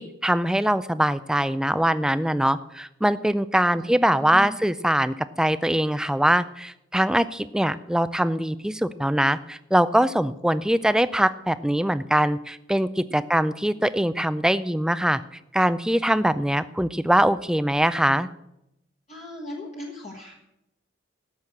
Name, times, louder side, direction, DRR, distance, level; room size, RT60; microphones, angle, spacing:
voice 1, 0.0-15.2 15.5-18.3, right 1 dB, 5° right, 14 dB, 0.3 m, -22 dB
voice 2, 3.7-4.5 13.1-13.3 19.1-20.3, left 1 dB, 30° left, -1 dB, 1.3 m, -39 dB
14.0 x 6.1 x 7.8 m, 0.86 s
head